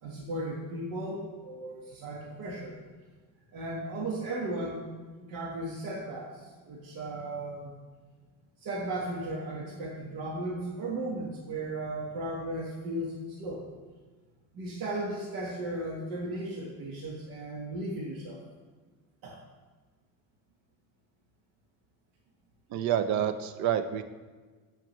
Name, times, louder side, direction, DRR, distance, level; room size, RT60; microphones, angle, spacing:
voice 1, 0.0-2.8 3.5-4.8 5.2-7.7 8.6-13.7 14.5-18.4 19.2-19.4, right 1 dB, 65° right, -3 dB, 1.4 m, -36 dB
voice 2, 22.7-24.0, right 9 dB, 50° right, 11 dB, 0.6 m, -28 dB
8.9 x 7.4 x 3.1 m, 1.4 s
cardioid pair, 160°, 37 cm